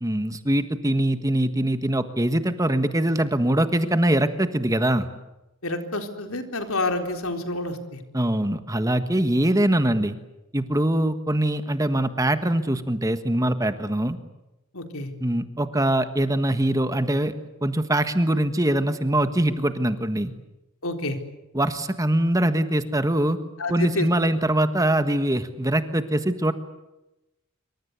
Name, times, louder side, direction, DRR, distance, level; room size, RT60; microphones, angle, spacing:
voice 1, 0.0-5.1 8.1-10.2 10.5-14.2 15.2-17.3 17.6-20.3 21.5-23.4 23.7-26.5, right 1 dB, 15° right, 10 dB, 1.4 m, -23 dB
voice 2, 5.6-8.0 14.7-15.1 20.8-21.2 23.6-24.4, left 2 dB, 75° left, 6 dB, 4.0 m, -29 dB
27.0 x 24.5 x 8.3 m, 0.96 s
head